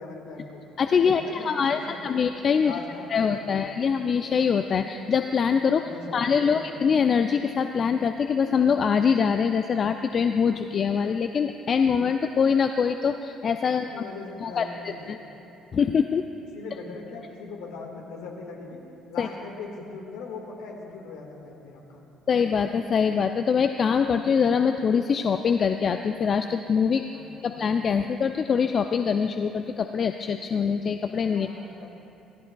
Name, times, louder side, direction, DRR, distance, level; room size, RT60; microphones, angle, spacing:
voice 1, 0.0-0.6 1.0-2.2 2.6-4.0 5.8-6.6 13.7-15.2 16.4-18.8 19.1-22.0 27.1-27.5 31.3-31.9, left 4 dB, 75° left, 0 dB, 1.7 m, -40 dB
voice 2, 0.8-2.7 3.1-5.8 6.1-14.0 14.4-15.2 15.7-16.3 19.2-19.3 22.3-27.0 27.4-31.5, left 6 dB, 50° left, 8 dB, 0.4 m, -24 dB
18.5 x 14.0 x 2.3 m, 2.9 s
hypercardioid pair, 55°, 0 cm